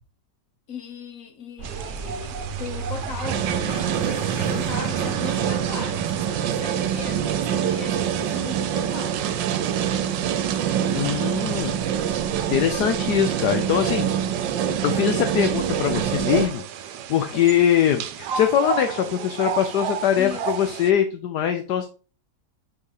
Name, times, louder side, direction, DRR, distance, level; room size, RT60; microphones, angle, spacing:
voice 1, 0.7-9.4 13.0-13.1 20.2-20.4, left 5 dB, 50° left, 1.6 m, -38 dB
sound 1, 1.6-12.7, right 5 dB, 50° right, 1.1 m, -35 dB
sound 2, 1.6-20.9, right 8 dB, 70° right, 1.2 m, -35 dB
sound 3, 3.2-16.5, right 9 dB, 90° right, 1.4 m, -25 dB
voice 2, 10.9-11.8 12.5-14.1 14.8-16.6 17.1-21.9, left 10 dB, 70° left, 1.3 m, -22 dB
6.5 x 5.8 x 4.0 m
omnidirectional pair, 1.9 m